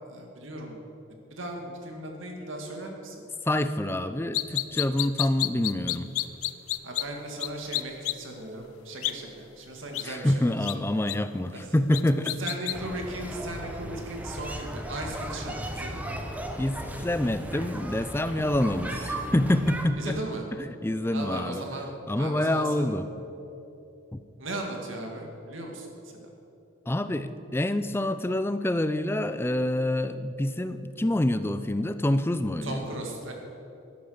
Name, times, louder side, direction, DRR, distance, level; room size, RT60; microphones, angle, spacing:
voice 1, 0.1-0.8 1.3-3.2 5.2-5.4 6.8-10.7 11.5-11.8 12.2-16.2 19.9-20.5 21.1-23.0 24.4-25.9 26.1-26.3 32.6-33.3, right 1 dB, 70° right, 2 dB, 2.1 m, -37 dB
voice 2, 3.5-6.1 10.0-12.4 16.6-20.2 20.6-21.6 22.1-23.1 24.1-24.2 26.9-32.8, left 1 dB, 10° left, 11 dB, 0.4 m, -27 dB
sound 1, 4.3-7.0 7.4-7.5 7.7-8.1 9.0-9.1 9.9-10.0 10.7-10.8 11.1-11.2 11.9-12.7, left 17 dB, 90° left, 0.5 m, -28 dB
sound 2, 12.7-19.9, right 1 dB, 5° right, 0.8 m, -36 dB
12.0 x 11.0 x 6.5 m, 2.9 s
head